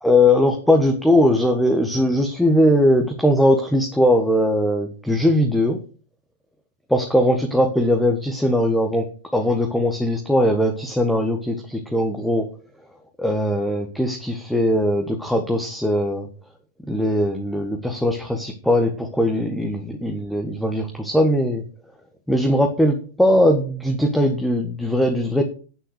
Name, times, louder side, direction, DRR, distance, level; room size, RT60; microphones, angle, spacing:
voice 1, 0.0-5.8 6.9-12.5 13.2-16.3 16.9-21.6 22.3-25.4, left 1 dB, ahead, 3 dB, 1.5 m, -20 dB
9.1 x 7.7 x 6.5 m, 0.39 s
figure-of-eight pair, 90°, 0 cm